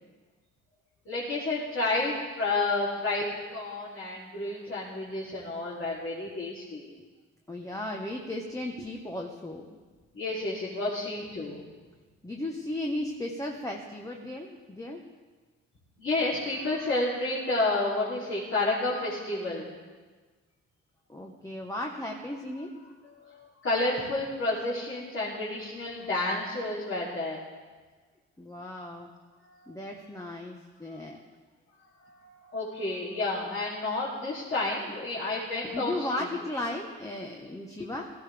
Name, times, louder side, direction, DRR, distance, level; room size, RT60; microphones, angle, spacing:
voice 1, 1.0-6.9 10.1-11.7 16.0-19.8 23.1-27.4 29.4-29.7 31.7-36.3, left 2 dB, 45° left, -8 dB, 3.3 m, -30 dB
voice 2, 7.5-9.7 12.2-15.0 21.1-22.7 28.4-29.1 29.7-31.2 35.7-38.1, left 1 dB, 10° left, 0 dB, 1.2 m, -35 dB
17.0 x 14.5 x 3.5 m, 1.4 s
cardioid pair, 90°, 30 cm